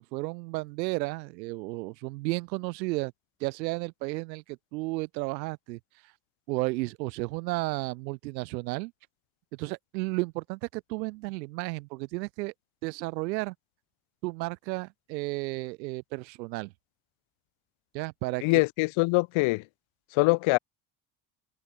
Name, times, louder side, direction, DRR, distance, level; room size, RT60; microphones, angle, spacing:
voice 1, 0.0-3.1 3.4-6.1 6.5-8.9 9.6-12.5 12.8-13.5 14.2-16.7 17.9-18.6, right 23 dB, 90° right, 2.5 m, -33 dB
voice 2, 18.4-19.6 20.1-20.6, left 24 dB, 70° left, 1.1 m, -23 dB
supercardioid pair, 70°, 50 cm